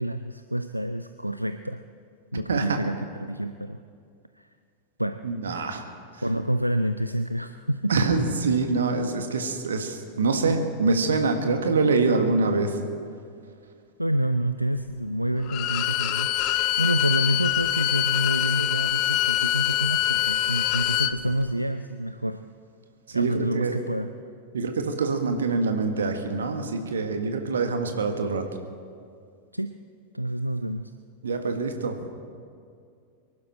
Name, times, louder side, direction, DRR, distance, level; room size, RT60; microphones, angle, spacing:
voice 1, 0.0-1.8 2.3-3.8 4.4-4.5 5.0-5.2 6.2-8.0 14.0-22.5 23.1-24.1 29.5-29.7 30.1-30.9, right 1 dB, 90° right, 9 dB, 0.4 m, -28 dB
voice 2, 5.2-5.8 7.9-12.7 23.1-23.8 24.5-28.4 31.2-32.0, right 3 dB, 70° right, 6 dB, 1.6 m, -25 dB
Bowed string instrument, 15.5-21.1, left 14 dB, 40° left, 0.6 m, -24 dB
24.5 x 11.5 x 4.3 m, 2.3 s
figure-of-eight pair, 90°, 0 cm